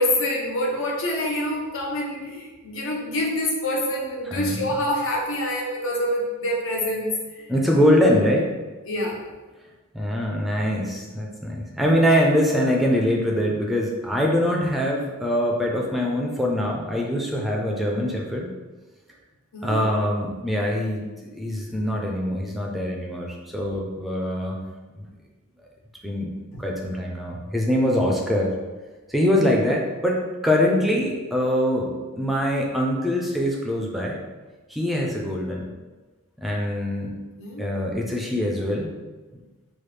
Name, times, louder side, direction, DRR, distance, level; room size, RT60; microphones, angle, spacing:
voice 1, 0.0-7.1 7.4-7.5 8.9-9.2 12.1-12.2 19.5-19.9 26.5-26.6 37.4-37.7, left 1 dB, 65° left, -2 dB, 0.7 m, -26 dB
voice 2, 4.2-4.6 7.5-8.5 9.9-18.5 19.6-24.6 24.9-25.1 26.0-28.5 29.1-34.2 34.7-35.7 36.4-37.1 37.6-38.9, equal, ahead, -1 dB, 0.4 m, -23 dB
3.2 x 2.3 x 3.2 m, 1.2 s
head